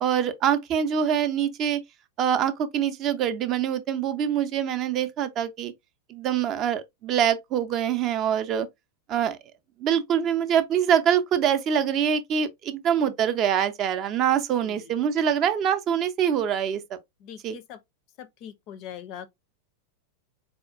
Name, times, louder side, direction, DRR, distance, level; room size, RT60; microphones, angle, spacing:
voice 1, 0.0-1.8 2.2-5.7 6.1-8.7 9.1-9.4 9.8-16.8 17.4-17.6, right 8 dB, 35° right, 0.4 m, -24 dB
voice 2, 14.6-14.9 17.2-17.8 18.2-19.3, left 9 dB, 40° left, 0.4 m, -42 dB
4.2 x 2.2 x 2.4 m
figure-of-eight pair, 90°, 0 cm